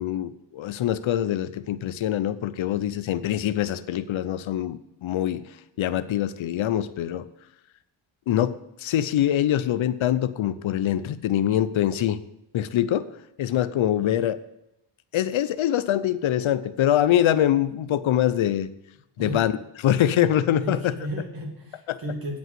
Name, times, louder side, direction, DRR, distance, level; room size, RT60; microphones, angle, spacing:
voice 1, 0.0-5.4 5.8-7.3 8.3-8.5 8.8-12.2 12.5-13.1 13.4-14.4 15.1-18.7 19.2-19.5 19.8-20.9 21.9-22.0, left 11 dB, 70° left, 13 dB, 0.7 m, -24 dB
voice 2, 20.6-22.4, right 1 dB, 45° right, 1 dB, 2.7 m, -34 dB
9.1 x 5.4 x 7.6 m, 0.86 s
cardioid pair, 60°, 49 cm